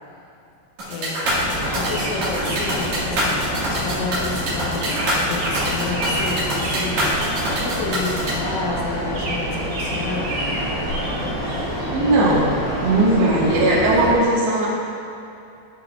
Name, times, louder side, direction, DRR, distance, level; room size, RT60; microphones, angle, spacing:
sound 1, 0.8-8.3, right 1 dB, 50° right, 2.3 m, -25 dB
voice 1, 0.9-1.3 1.7-7.1 7.6-10.4 13.5-13.6, left 3 dB, 85° left, -3 dB, 3.7 m, -30 dB
sound 2, 1.2-14.2, equal, 60° left, 2.4 m, -27 dB
sound 3, 1.2-11.9, right 1 dB, 85° right, 4.2 m, -32 dB
voice 2, 11.9-14.7, right 2 dB, 65° right, -7 dB, 3.6 m, -18 dB
13.0 x 5.9 x 2.4 m, 2.6 s
omnidirectional pair, 5.6 m